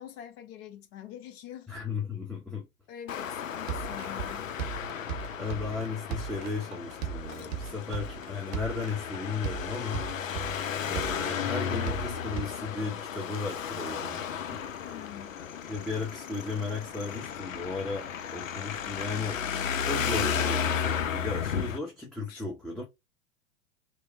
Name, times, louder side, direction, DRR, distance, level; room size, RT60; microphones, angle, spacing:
voice 1, 0.0-1.7 2.9-4.4 10.1-10.4 14.8-15.4 22.3-22.4, left 10 dB, 50° left, 1.0 m, -45 dB
voice 2, 1.7-2.7 5.4-10.1 10.8-14.2 14.5-14.6 15.7-19.4 19.8-22.8, left 4 dB, ahead, 0.7 m, -35 dB
Traffic noise roadway noise, 3.1-21.8, left 7 dB, 85° left, 0.5 m, -34 dB
sound 1, 3.7-12.4, right 8 dB, 55° right, 0.8 m, -37 dB
3.1 x 2.1 x 3.4 m
hypercardioid pair, 95°, 38 cm